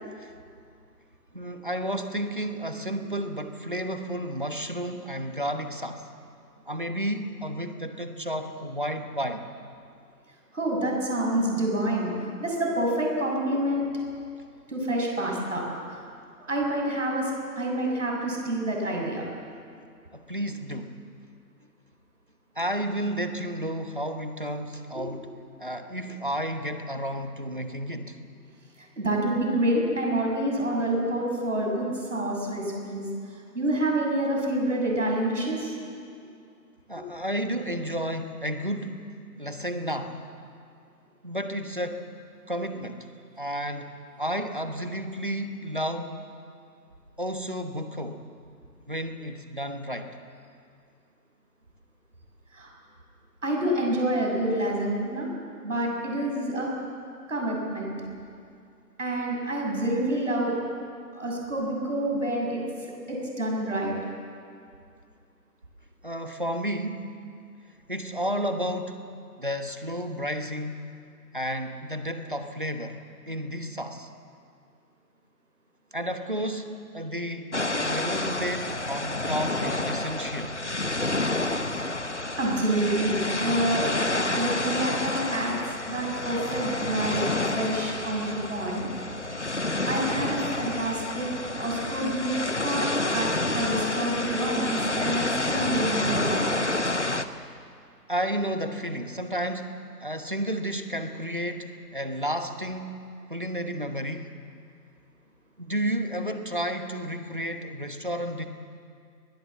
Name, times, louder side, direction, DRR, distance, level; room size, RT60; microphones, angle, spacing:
voice 1, 1.3-6.1 6.7-9.4 20.1-21.0 22.5-25.3 25.6-28.2 36.9-39.1 39.4-40.2 41.2-42.0 42.5-43.1 43.4-46.3 47.2-48.3 48.9-50.2 66.0-67.2 67.9-69.0 69.4-70.9 71.3-73.0 73.3-74.1 75.9-80.6 98.1-103.0 103.3-104.4 105.6-108.5, equal, 30° right, 7 dB, 1.1 m, -32 dB
voice 2, 10.5-13.9 14.7-15.6 15.9-16.0 16.5-19.2 24.9-25.0 29.0-35.7 36.9-37.0 52.5-52.7 53.4-55.3 55.6-56.7 57.3-57.9 59.0-60.5 61.1-62.6 63.1-64.0 81.7-81.9 82.4-83.9 84.2-85.6 85.9-88.9 89.8-91.3 91.6-92.3 92.6-93.3 93.5-96.5, right 1 dB, 45° right, -1 dB, 6.8 m, -27 dB
sound 1, 77.5-97.3, left 2 dB, 45° left, 0.9 m, -29 dB
22.0 x 20.0 x 7.7 m, 2.4 s
figure-of-eight pair, 180°, 50 cm